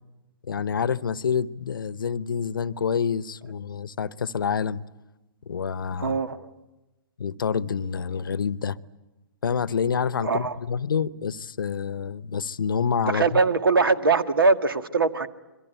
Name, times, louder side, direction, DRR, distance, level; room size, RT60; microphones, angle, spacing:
voice 1, 0.5-4.8 5.5-6.2 7.2-8.8 9.4-13.4, left 6 dB, 70° left, 18 dB, 0.9 m, -27 dB
voice 2, 6.0-6.5 10.2-10.5 13.1-15.3, right 4 dB, 80° right, 11 dB, 1.7 m, -22 dB
27.5 x 23.5 x 9.1 m, 1.0 s
figure-of-eight pair, 125°, 12 cm